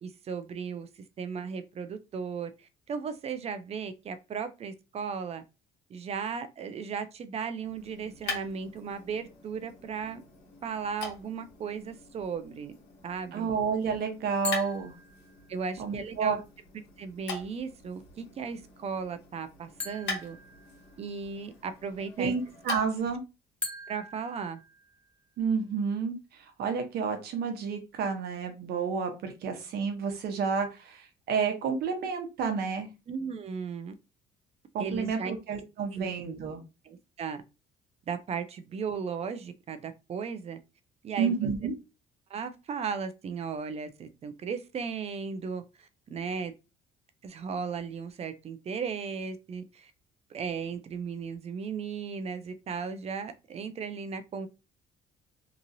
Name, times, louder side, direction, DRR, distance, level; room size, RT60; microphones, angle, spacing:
voice 1, 0.0-0.9 1.2-5.4 5.9-10.2 10.6-12.7 13.0-13.5 15.5-16.4 17.0-20.4 21.0-22.3 23.9-24.6 33.1-33.9 34.8-35.4 35.9-36.1 36.8-37.4 38.1-40.6 41.0-41.3 42.3-46.5 47.2-49.9 50.3-54.5, right 6 dB, 40° right, 0.4 m, -36 dB
sound 1, 7.6-23.2, left 3 dB, 85° left, 1.2 m, -43 dB
voice 2, 13.3-15.0 15.8-16.4 22.2-23.2 25.4-32.9 34.7-36.6 41.2-41.8, right 5 dB, 70° right, 0.8 m, -30 dB
sound 2, 14.4-15.7 19.8-21.3 23.6-25.3, left 3 dB, 5° left, 0.9 m, -41 dB
2.9 x 2.4 x 2.6 m
cardioid pair, 110°, 17 cm